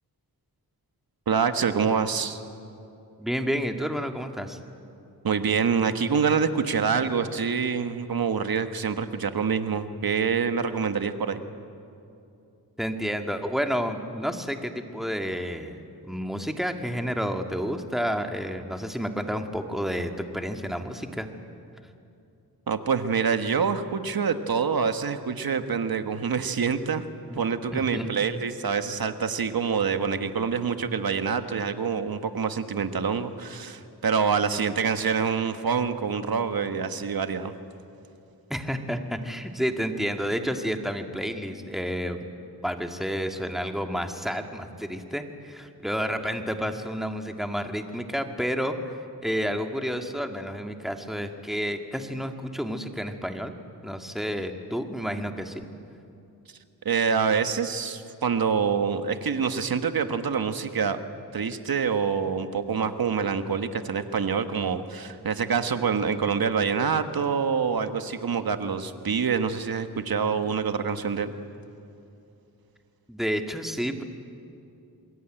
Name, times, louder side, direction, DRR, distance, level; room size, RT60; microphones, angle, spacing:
voice 1, 1.3-2.4 5.2-11.4 22.7-27.0 27.3-37.5 56.8-61.0 61.3-71.3, right 6 dB, 65° right, 9 dB, 1.6 m, -26 dB
voice 2, 3.2-4.6 12.8-21.3 27.3-27.4 27.7-28.1 38.5-42.3 42.6-49.0 49.2-53.5 53.8-55.7 73.1-74.0, equal, ahead, 5 dB, 2.0 m, -30 dB
27.5 x 21.5 x 9.1 m, 2.7 s
wide cardioid pair, 85°, 38 cm